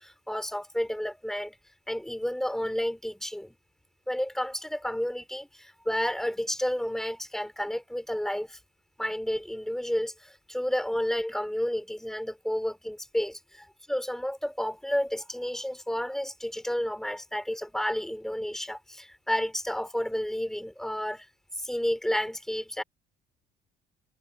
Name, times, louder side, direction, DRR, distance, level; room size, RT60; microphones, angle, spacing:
voice 1, 0.0-1.6 1.9-3.6 4.1-8.6 9.0-13.3 13.9-21.3 21.5-22.8, equal, ahead, 3.0 m, -31 dB
cardioid pair, 110°, 17 cm